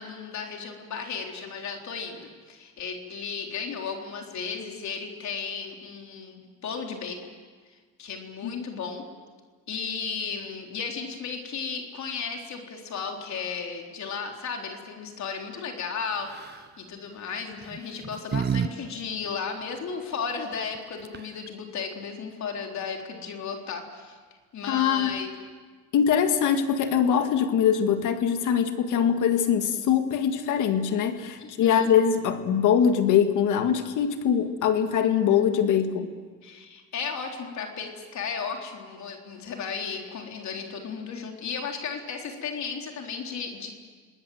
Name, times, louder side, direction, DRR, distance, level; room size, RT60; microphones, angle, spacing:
voice 1, 0.0-7.2 8.0-9.0 9.7-24.2 24.5-25.3 31.4-31.9 36.4-43.7, left 5 dB, 65° left, 2 dB, 3.9 m, -34 dB
sound 1, 16.2-16.7 17.6-18.7 19.0-19.1 20.7-20.8 21.0-21.5, right 7 dB, 35° right, 0.7 m, -30 dB
voice 2, 24.7-25.2 25.9-36.1, left 8 dB, 85° left, 7 dB, 1.9 m, -23 dB
28.0 x 20.0 x 7.8 m, 1.5 s
cardioid pair, 90°, 30 cm